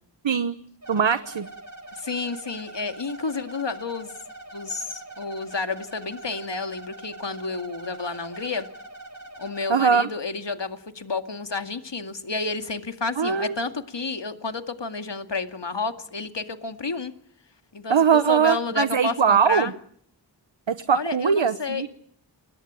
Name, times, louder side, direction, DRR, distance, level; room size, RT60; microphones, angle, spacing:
voice 1, 0.2-0.6 0.9-1.5 9.7-10.1 13.2-13.6 17.9-19.7 20.7-21.9, right 6 dB, 85° right, 12 dB, 1.1 m, -21 dB
sound 1, 0.8-9.8, right 2 dB, 40° right, 6.0 m, -43 dB
voice 2, 1.9-4.1 4.5-8.7 9.4-17.1 17.7-19.7 20.9-21.8, left 4 dB, 70° left, 7 dB, 2.2 m, -30 dB
29.5 x 22.0 x 8.8 m, 0.65 s
wide cardioid pair, 65°, 44 cm